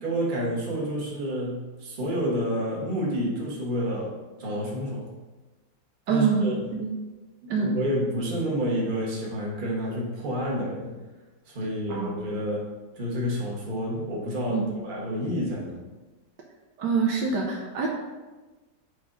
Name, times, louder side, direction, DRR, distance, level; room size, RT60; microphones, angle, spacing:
voice 1, 0.0-5.1 6.1-6.7 7.6-11.0 11.4-12.6 12.9-15.8, equal, 30° right, -3 dB, 1.2 m, -29 dB
voice 2, 6.1-6.9 7.5-7.7 11.9-12.2 14.5-14.7 16.8-17.9, right 5 dB, 70° right, -1 dB, 1.3 m, -25 dB
6.3 x 4.0 x 3.7 m, 1.2 s
omnidirectional pair, 2.0 m